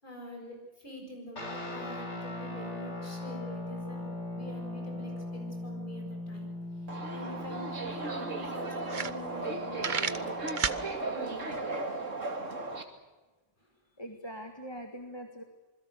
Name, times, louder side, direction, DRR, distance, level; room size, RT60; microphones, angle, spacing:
voice 1, 0.0-6.5 7.1-10.3 11.1-11.6, equal, 40° left, 2 dB, 7.5 m, -45 dB
sound 1, 1.4-11.1, left 1 dB, 65° left, 4.4 m, -40 dB
Subway metro underground, 6.9-12.8, right 2 dB, 85° right, 2.8 m, -36 dB
sound 2, 7.4-7.5 7.8-7.9 8.4-8.5 8.8-9.5 9.8-10.8, right 6 dB, 40° right, 1.1 m, -31 dB
voice 2, 14.0-15.4, equal, 20° left, 4 dB, 1.9 m, -42 dB
27.5 x 21.0 x 6.8 m, 1.2 s
omnidirectional pair, 1.3 m